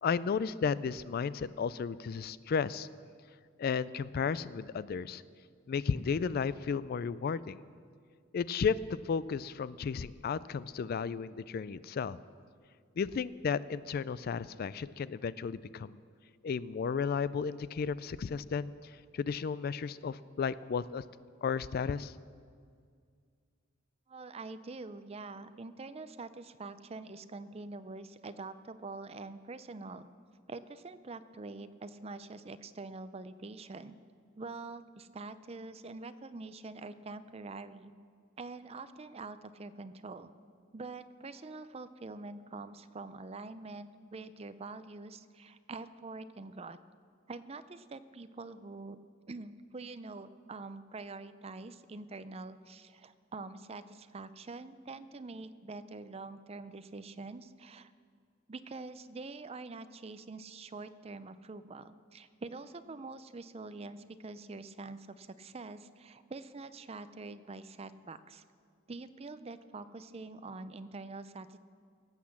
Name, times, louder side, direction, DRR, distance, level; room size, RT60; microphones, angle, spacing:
voice 1, 0.0-2.9 3.6-5.2 5.7-7.6 8.3-12.2 13.0-16.0 16.4-21.0 21.4-22.1, left 6 dB, 50° left, 17 dB, 0.3 m, -33 dB
voice 2, 24.1-30.1 30.5-34.0 34.4-37.9 38.4-40.3 40.7-46.8 47.3-49.0 49.3-57.9 58.5-68.4 68.9-71.6, right 3 dB, 30° right, 13 dB, 0.5 m, -45 dB
17.5 x 8.3 x 7.3 m, 2.1 s
head